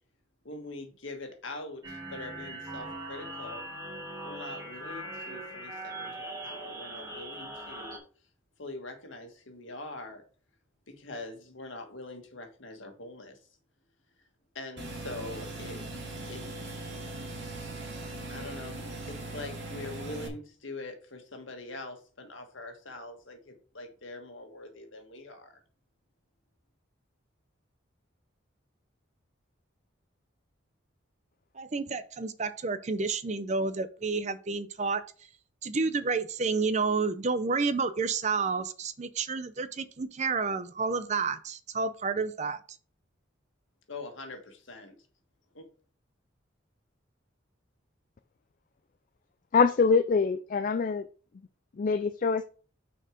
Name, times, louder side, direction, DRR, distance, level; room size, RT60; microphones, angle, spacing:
voice 1, 0.4-3.7 4.2-8.0 8.6-10.2 10.9-13.4 14.5-15.8 16.3-16.9 18.3-18.8 19.1-25.6 43.9-44.9 45.5-45.7, left 2 dB, 70° left, 1.6 m, -43 dB
sound 1, 1.8-8.0, right 1 dB, 15° right, 1.6 m, -40 dB
sound 2, 14.8-20.3, right 2 dB, 60° right, 1.9 m, -39 dB
voice 2, 31.6-35.0 35.6-42.6, right 4 dB, 35° right, 0.5 m, -30 dB
voice 3, 49.5-51.0 51.8-52.4, left 5 dB, 40° left, 0.3 m, -24 dB
6.3 x 4.4 x 5.1 m
head